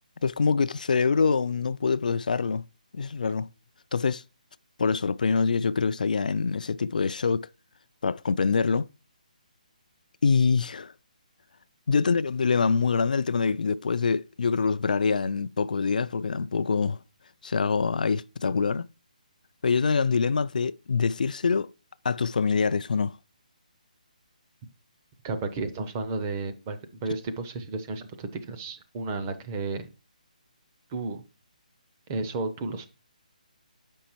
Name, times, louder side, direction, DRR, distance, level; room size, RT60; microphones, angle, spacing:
voice 1, 0.2-2.6 2.9-3.5 3.9-4.2 4.8-7.5 8.0-8.9 10.2-10.9 11.9-17.0 17.4-18.9 19.6-21.7 22.0-23.2, left 5 dB, 70° left, 0.3 m, -25 dB
voice 2, 25.2-29.9 30.9-31.2 32.1-32.9, right 3 dB, 15° right, 0.6 m, -32 dB
7.4 x 5.3 x 4.4 m
hypercardioid pair, 175°, 5 cm